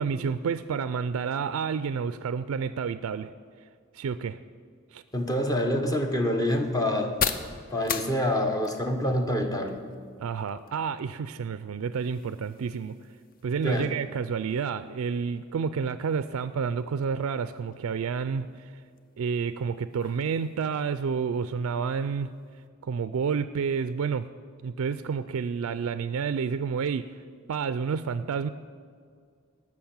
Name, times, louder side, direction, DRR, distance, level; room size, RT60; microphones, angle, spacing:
voice 1, 0.0-3.3 3.9-4.4 4.9-5.0 10.2-13.0 13.4-18.7 19.2-22.3 22.8-24.3 24.6-27.1 27.5-28.5, right 6 dB, 70° right, 13 dB, 0.3 m, -29 dB
sound 1, 5.1-22.7, left 6 dB, 40° left, 0.6 m, -41 dB
voice 2, 5.1-7.1 7.7-9.8 13.6-13.9, left 1 dB, 15° left, 5 dB, 1.0 m, -26 dB
13.0 x 6.1 x 8.7 m, 2.1 s
head